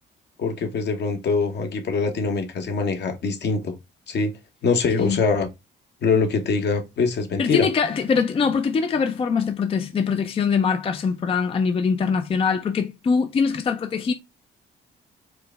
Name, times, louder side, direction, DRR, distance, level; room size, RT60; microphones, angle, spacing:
voice 1, 0.4-3.7 4.1-4.3 4.6-5.5 6.0-7.7, left 4 dB, 60° left, 0.9 m, -23 dB
voice 2, 7.4-14.1, left 5 dB, 30° left, 0.4 m, -23 dB
4.6 x 2.1 x 3.3 m
cardioid pair, 90°, 20 cm